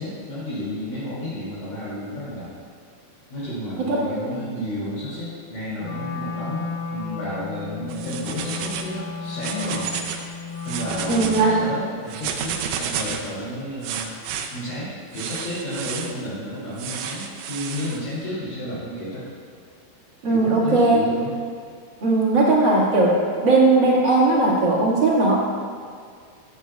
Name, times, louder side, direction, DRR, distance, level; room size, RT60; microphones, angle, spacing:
voice 1, 0.0-2.5 3.3-9.9 10.6-14.1 14.5-19.2 20.3-21.3, equal, 65° left, -12 dB, 4.2 m, -32 dB
voice 2, 3.8-4.6 11.1-11.5 20.2-21.0 22.0-25.4, right 2 dB, 40° right, -6 dB, 1.9 m, -18 dB
Wind instrument woodwind instrument, 5.8-11.8, left 5 dB, 80° left, 2.7 m, -34 dB
sound 1, 7.9-8.9 9.3-10.3 10.6-11.5 12.1-13.3 13.8-14.5 15.1-16.1 16.8-18.0, right 7 dB, 85° right, 2.6 m, -31 dB
14.5 x 8.2 x 2.4 m, 2.1 s
omnidirectional pair, 4.4 m